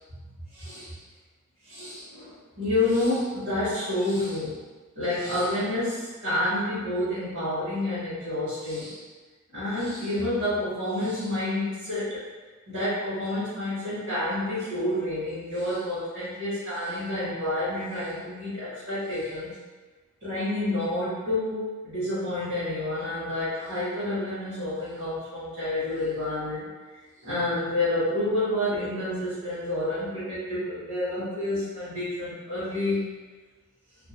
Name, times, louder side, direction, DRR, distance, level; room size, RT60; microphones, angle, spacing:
voice 1, 0.5-1.0 1.6-4.6 4.9-9.0 9.5-12.2 12.7-19.6 20.2-26.7 27.2-33.0, left 1 dB, 60° right, -17 dB, 1.4 m, -29 dB
2.9 x 2.5 x 2.8 m, 1.3 s
head